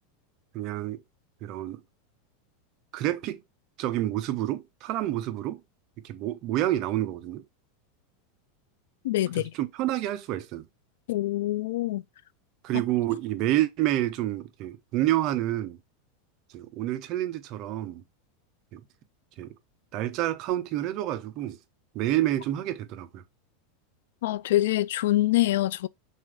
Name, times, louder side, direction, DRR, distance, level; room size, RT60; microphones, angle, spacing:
voice 1, 0.5-1.0 1.4-1.8 2.9-3.4 3.8-5.6 6.0-7.4 9.3-10.6 12.6-15.8 16.5-18.0 18.7-18.8 19.4-19.5 19.9-21.6 21.9-23.2, right 14 dB, 35° right, 0.6 m, -28 dB
voice 2, 9.0-9.5 11.1-12.0 24.2-25.9, left 15 dB, 80° left, 0.3 m, -25 dB
6.3 x 2.5 x 3.4 m
supercardioid pair, 170°, 0 cm